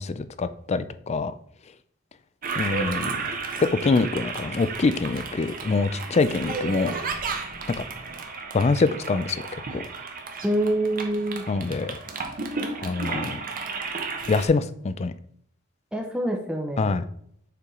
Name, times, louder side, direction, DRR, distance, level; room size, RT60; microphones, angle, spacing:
voice 1, 0.0-1.3 2.6-3.2 3.6-6.9 8.5-9.4 9.7-9.8 11.5-12.0 12.8-13.4 14.3-15.1 16.8-17.0, left 3 dB, 35° left, 13 dB, 0.4 m, -24 dB
Toilet flush, 2.4-14.5, right 4 dB, 45° right, 0.9 m, -33 dB
voice 2, 10.4-11.4 15.9-17.0, right 1 dB, 5° right, 2 dB, 0.7 m, -26 dB
6.8 x 4.6 x 3.7 m, 0.68 s
head